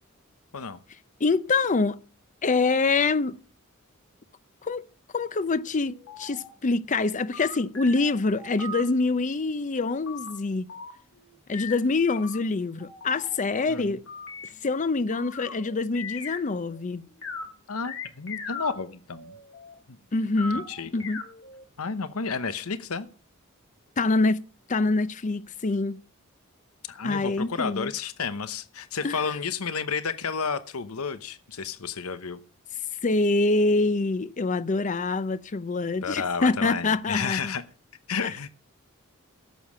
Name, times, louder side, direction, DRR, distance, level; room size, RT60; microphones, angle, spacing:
voice 1, 1.2-2.0 2.4-3.4 4.6-4.9 5.1-10.7 11.5-14.0 14.6-17.0 20.1-20.6 20.9-21.2 24.0-24.4 24.7-26.0 27.0-27.9 29.0-29.2 33.0-37.5 38.2-38.3, left 3 dB, 35° left, 0.5 m, -25 dB
sound 1, 5.9-6.5 6.9-8.8 10.1-10.3 10.7-11.3 11.5-16.8 17.1-17.4 17.8-19.7 20.4-21.6, left 3 dB, 65° left, 3.5 m, -39 dB
voice 2, 17.7-19.3 19.9-20.0 20.5-21.0 21.8-23.1 26.9-32.4 36.0-37.6 38.1-38.5, left 5 dB, 85° left, 0.9 m, -31 dB
11.5 x 7.4 x 7.2 m
head